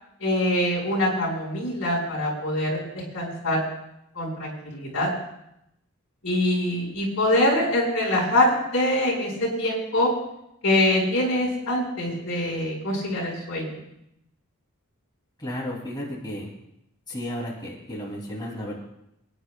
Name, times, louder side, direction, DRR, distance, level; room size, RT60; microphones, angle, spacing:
voice 1, 0.2-3.6 4.1-5.1 6.2-10.1 10.6-13.7, left 1 dB, 65° left, -4 dB, 4.8 m, -24 dB
voice 2, 15.4-16.5 17.1-18.8, equal, 20° left, -4 dB, 2.6 m, -33 dB
26.0 x 9.9 x 2.3 m, 0.82 s
head